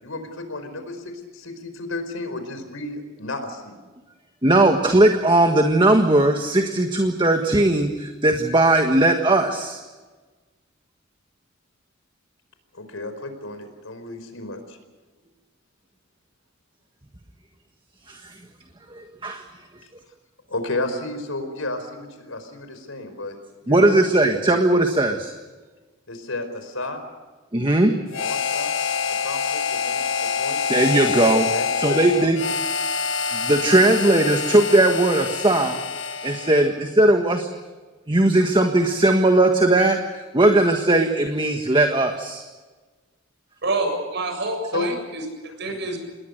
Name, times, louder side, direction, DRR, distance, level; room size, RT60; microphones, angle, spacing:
voice 1, 0.0-3.8 12.7-14.8 20.5-23.4 23.6-23.9 26.1-27.0 28.2-28.7 29.2-30.6 31.5-32.4 33.6-33.9 44.7-44.9, left 2 dB, 85° left, 8 dB, 4.9 m, -32 dB
voice 2, 4.4-9.8 18.1-18.4 18.9-19.4 23.7-25.3 27.5-27.9 30.7-31.5 31.8-32.4 33.3-35.8 36.2-37.5 38.1-42.4, right 2 dB, 25° right, 5 dB, 1.6 m, -18 dB
Harmonica, 28.1-36.7, left 6 dB, 65° left, 1.6 m, -26 dB
voice 3, 43.6-46.0, right 2 dB, 60° right, 4 dB, 7.5 m, -27 dB
28.0 x 20.5 x 6.6 m, 1.3 s
head